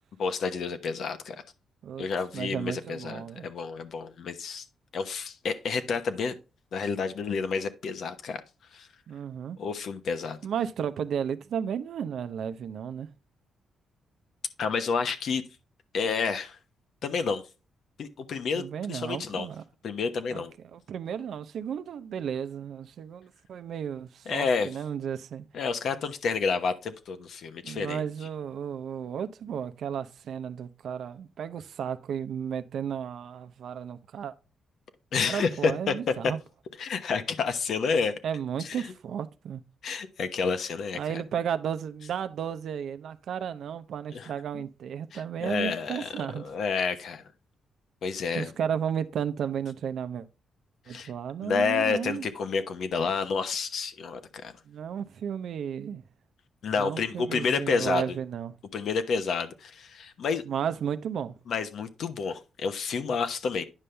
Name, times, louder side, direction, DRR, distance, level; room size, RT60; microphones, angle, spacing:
voice 1, 0.2-1.4 2.0-4.6 4.9-6.3 6.7-8.4 8.7-8.9 9.6-10.4 14.6-15.4 15.9-16.6 17.0-17.4 18.0-19.5 19.8-20.5 24.3-24.7 25.5-28.0 35.1-35.9 36.8-38.1 38.6-38.9 39.8-41.2 44.1-44.7 45.1-46.1 46.4-47.2 48.0-48.5 50.9-51.1 51.4-54.5 56.6-58.0 58.7-60.4 61.5-63.6, left 5 dB, 65° left, 1.1 m, -29 dB
voice 2, 2.3-3.5 9.1-9.6 10.4-13.1 18.6-19.6 20.3-20.4 20.7-25.5 27.6-34.3 35.3-36.4 38.2-39.6 40.9-46.5 48.3-50.3 50.9-52.3 54.7-56.0 56.8-58.5 60.5-61.3, right 8 dB, 70° right, 0.7 m, -33 dB
9.8 x 5.5 x 3.3 m
cardioid pair, 100°, 0 cm